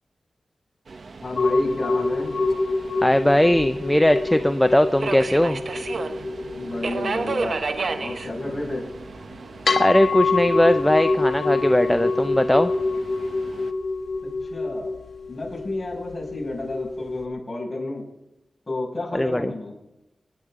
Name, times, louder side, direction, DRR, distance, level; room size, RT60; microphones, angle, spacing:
Subway metro underground, 0.9-13.7, right 4 dB, 65° right, 0.8 m, -34 dB
voice 1, 1.2-2.3 6.5-7.6 8.0-8.8 14.5-15.0 15.3-18.0 18.7-19.8, left 2 dB, 30° left, -2 dB, 6.0 m, -31 dB
sound 1, 1.4-17.3, left 3 dB, 70° left, 1.7 m, -26 dB
voice 2, 3.0-5.6 9.8-12.7 19.1-19.5, left 1 dB, 10° left, 9 dB, 0.5 m, -19 dB
27.5 x 10.5 x 3.7 m, 0.95 s
wide cardioid pair, 75°, 0 cm